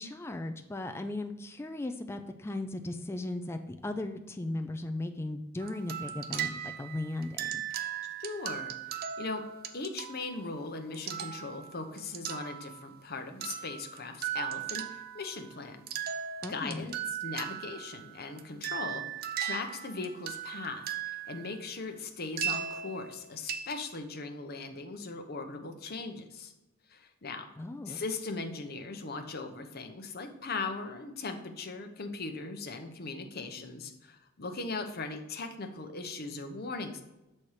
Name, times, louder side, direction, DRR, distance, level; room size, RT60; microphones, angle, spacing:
voice 1, 0.0-7.6 16.4-16.9 27.6-28.0, left 2 dB, 10° left, 7 dB, 0.3 m, -37 dB
sound 1, 5.6-13.1 13.4-15.6 15.9-21.6 22.4-24.0, right 9 dB, 45° right, 0.5 m, -38 dB
voice 2, 8.2-9.4 9.7-15.8 16.5-19.0 19.4-26.5 26.9-27.5 27.9-37.0, left 3 dB, 50° left, 6 dB, 0.8 m, -39 dB
6.4 x 4.3 x 4.7 m, 0.98 s
head